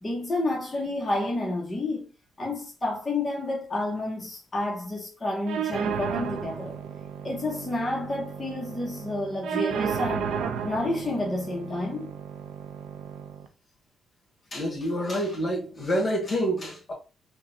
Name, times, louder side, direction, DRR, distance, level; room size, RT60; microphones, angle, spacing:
voice 1, 0.0-2.1 2.4-6.7 7.2-10.3 10.6-12.1, left 2 dB, 25° left, 0.9 m, -30 dB
sound 1, 5.5-13.5, right 7 dB, 80° right, 0.4 m, -33 dB
voice 2, 14.5-16.9, equal, 45° left, 1.4 m, -27 dB
3.9 x 2.1 x 2.6 m
supercardioid pair, 65°, 0 cm